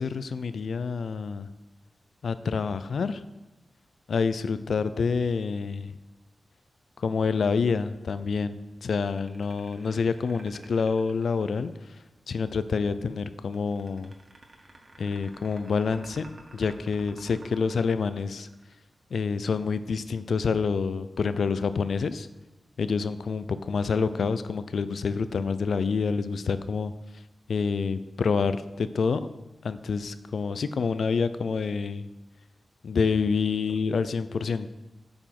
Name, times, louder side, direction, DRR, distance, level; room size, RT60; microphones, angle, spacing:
voice 1, 0.0-1.5 2.2-3.2 4.1-6.0 7.0-11.7 12.3-14.1 15.0-18.5 19.1-22.3 22.8-26.9 27.5-29.3 29.6-32.1 32.8-34.7, left 5 dB, 75° left, 13 dB, 0.5 m, -27 dB
sound 1, 8.9-12.0 13.4-18.9, right 2 dB, 45° right, 1.4 m, -51 dB
8.7 x 7.1 x 5.9 m, 1.0 s
wide cardioid pair, 155°, 0 cm